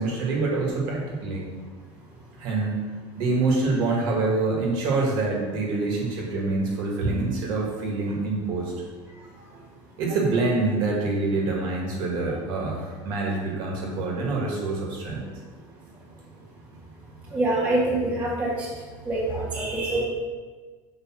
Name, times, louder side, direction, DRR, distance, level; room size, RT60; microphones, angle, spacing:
voice 1, 0.0-1.5 2.4-2.9 3.2-8.7 10.0-15.3, right 3 dB, 45° right, -2 dB, 1.8 m, -26 dB
voice 2, 17.3-18.7 19.0-20.0, right 2 dB, 15° right, -7 dB, 1.5 m, -25 dB
6.6 x 5.1 x 6.1 m, 1.4 s
cardioid pair, 180°, 10 cm